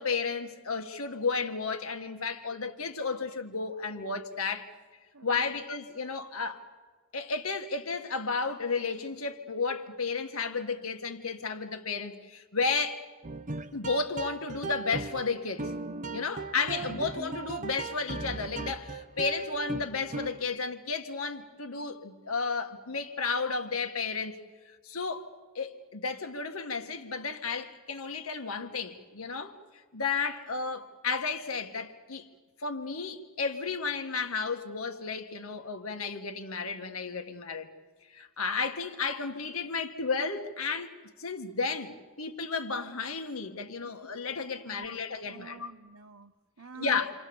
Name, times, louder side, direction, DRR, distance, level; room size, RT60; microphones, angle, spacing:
voice 1, 0.0-4.7 5.2-6.6 7.1-13.0 13.7-15.7 16.1-24.4 24.8-25.3 25.6-29.6 29.9-32.3 32.6-37.7 38.1-45.7 46.8-47.1, left 4 dB, 90° left, 1.9 m, -33 dB
voice 2, 5.1-5.6 16.8-17.2 44.7-47.0, right 4 dB, 85° right, 1.1 m, -50 dB
sound 1, 13.2-20.5, right 3 dB, 35° right, 1.0 m, -37 dB
28.0 x 26.0 x 7.2 m
head